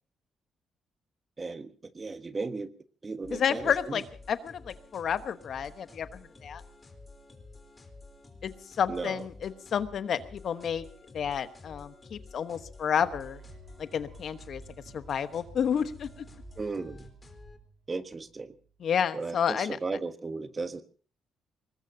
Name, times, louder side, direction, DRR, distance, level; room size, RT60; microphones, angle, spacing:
voice 1, 1.4-2.7 3.0-4.0 8.9-9.2 16.6-17.1 17.9-18.5 19.1-20.8, right 3 dB, 30° right, 10 dB, 1.3 m, -35 dB
sound 1, 3.2-17.6, left 3 dB, 25° left, 3.8 m, -51 dB
voice 2, 3.3-6.6 8.4-10.8 11.1-13.4 13.8-14.6 14.9-16.2 18.8-19.8, left 8 dB, 60° left, 11 dB, 1.1 m, -30 dB
sound 2, 13.0-18.9, right 5 dB, 50° right, 3.2 m, -53 dB
24.0 x 19.5 x 2.8 m, 0.39 s
cardioid pair, 90°, 0 cm